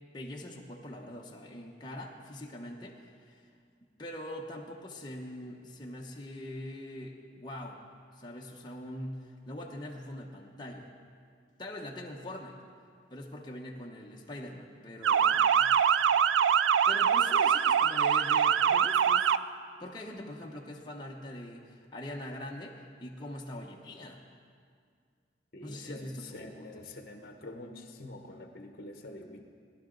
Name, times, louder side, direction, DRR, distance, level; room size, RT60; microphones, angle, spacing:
voice 1, 0.1-3.4 4.0-7.8 8.2-10.9 11.6-12.6 13.1-15.7 16.9-19.3 19.8-24.2 25.6-27.0, left 1 dB, 25° left, -1 dB, 1.0 m, -43 dB
Motor vehicle (road) / Siren, 15.0-19.4, right 8 dB, 85° right, 0.4 m, -24 dB
voice 2, 25.5-29.4, left 2 dB, 50° left, 4 dB, 1.0 m, -46 dB
19.0 x 11.5 x 3.9 m, 2.1 s
head